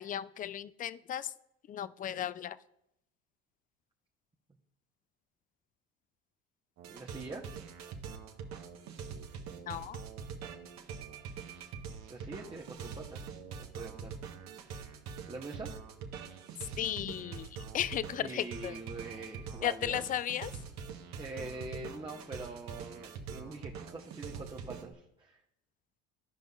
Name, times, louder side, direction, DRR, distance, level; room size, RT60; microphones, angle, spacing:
voice 1, 0.0-1.3 1.7-2.6 9.7-10.0 16.8-18.8 19.6-20.5, left 10 dB, 25° left, 17 dB, 0.3 m, -35 dB
sound 1, 6.8-24.9, right 6 dB, 55° right, 1.2 m, -44 dB
voice 2, 6.9-7.5 12.1-14.2 15.3-15.7 18.2-20.1 21.2-25.4, right 3 dB, 15° right, -2 dB, 0.9 m, -44 dB
14.5 x 5.2 x 2.4 m, 0.81 s
hypercardioid pair, 75°, 32 cm